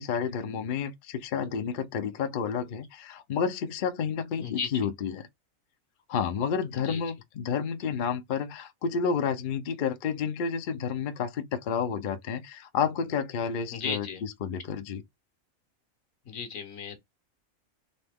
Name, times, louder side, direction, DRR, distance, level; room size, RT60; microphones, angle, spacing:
voice 1, 0.0-5.2 6.1-15.0, left 6 dB, 55° left, 0.6 m, -30 dB
voice 2, 13.7-14.2 16.2-17.0, left 6 dB, 75° left, 1.5 m, -35 dB
4.1 x 3.3 x 3.5 m
omnidirectional pair, 1.4 m